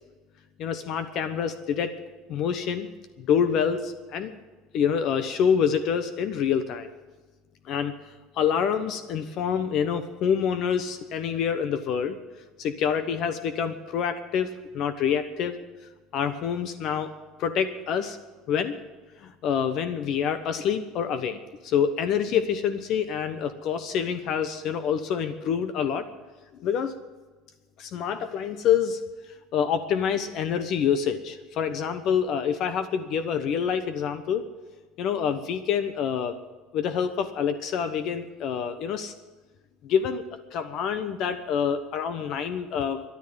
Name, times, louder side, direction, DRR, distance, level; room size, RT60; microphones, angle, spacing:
voice 1, 0.6-1.9 2.3-2.9 3.2-4.3 4.7-6.9 7.6-7.9 8.3-12.2 12.6-15.6 16.1-17.1 17.4-18.2 18.5-18.8 19.2-26.1 26.6-26.9 27.8-29.0 29.5-34.5 35.0-36.4 36.7-39.1 39.8-40.2 40.5-43.0, left 7 dB, 55° left, 10 dB, 1.1 m, -26 dB
13.0 x 11.0 x 8.7 m, 1.3 s
supercardioid pair, 120°, 0 cm